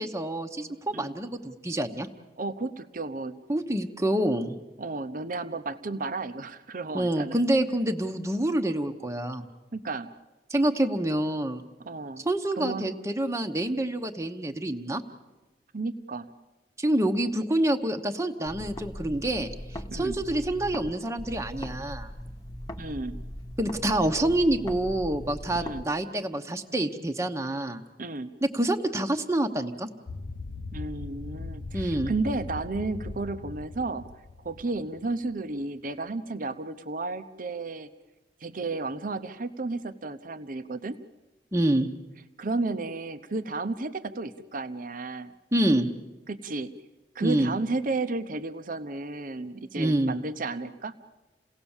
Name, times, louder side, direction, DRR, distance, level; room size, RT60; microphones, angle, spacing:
voice 1, 0.0-2.1 3.5-4.6 6.9-9.5 10.5-11.6 12.2-15.0 16.8-22.1 23.6-27.8 28.4-29.9 31.7-32.1 41.5-41.9 45.5-45.9 47.2-47.5 49.8-50.2, right 1 dB, 15° right, 5 dB, 1.0 m, -27 dB
voice 2, 2.4-3.4 4.8-7.4 9.7-10.1 11.8-12.2 12.6-12.9 15.7-16.3 19.9-20.2 22.8-23.2 25.5-25.8 28.0-28.3 30.7-34.1 34.4-37.9 38.4-41.0 42.4-45.3 46.3-46.7 47.1-50.9, right 3 dB, 50° right, 10 dB, 0.9 m, -33 dB
sound 1, 18.5-20.9 21.2-25.8, equal, 20° left, 1.2 m, -39 dB
sound 2, 30.1-35.2, left 3 dB, 75° left, 0.8 m, -39 dB
29.0 x 17.5 x 7.3 m, 1.2 s
head